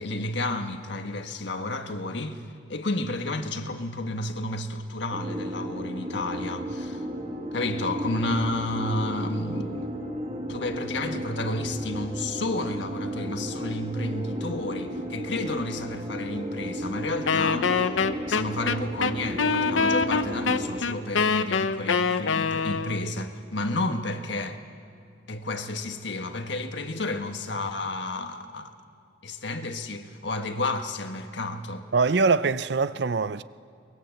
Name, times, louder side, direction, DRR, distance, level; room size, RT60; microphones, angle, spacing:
voice 1, 0.0-2.4 2.7-7.1 7.5-9.9 10.5-18.0 18.3-24.6 25.3-28.7 29.2-31.8, left 2 dB, 70° left, 1.4 m, -31 dB
sound 1, 5.1-20.8, right 1 dB, 35° right, 2.1 m, -34 dB
Wind instrument woodwind instrument, 17.3-23.1, left 5 dB, 90° left, 0.8 m, -25 dB
voice 2, 31.9-33.4, right 4 dB, 60° right, 0.5 m, -23 dB
23.5 x 21.0 x 7.9 m
head